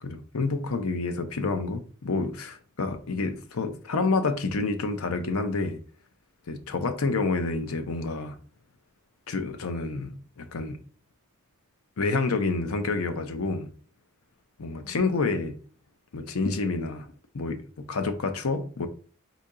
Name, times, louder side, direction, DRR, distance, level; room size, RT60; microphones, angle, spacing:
voice 1, 0.0-5.8 6.5-8.4 9.3-10.8 12.0-13.7 14.6-15.6 16.1-17.1 17.3-18.9, left 3 dB, 75° left, 0.7 m, -28 dB
4.0 x 2.8 x 4.8 m
head